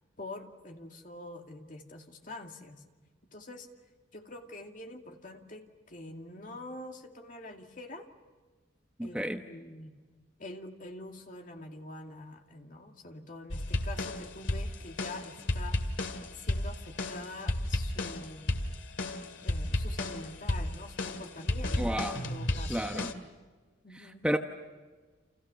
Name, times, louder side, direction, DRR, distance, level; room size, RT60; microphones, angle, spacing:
voice 1, 0.2-2.8 3.3-3.7 4.1-8.1 9.0-10.0 10.4-15.8 16.3-18.5 19.4-22.9 23.8-24.3, left 2 dB, 40° left, 3 dB, 2.4 m, -45 dB
voice 2, 9.0-9.4 21.8-22.2 22.7-23.1 24.2-24.4, equal, 5° right, 4 dB, 1.0 m, -31 dB
sound 1, 13.5-23.1, left 1 dB, 75° left, 2.2 m, -33 dB
29.5 x 28.5 x 7.0 m, 1.3 s
head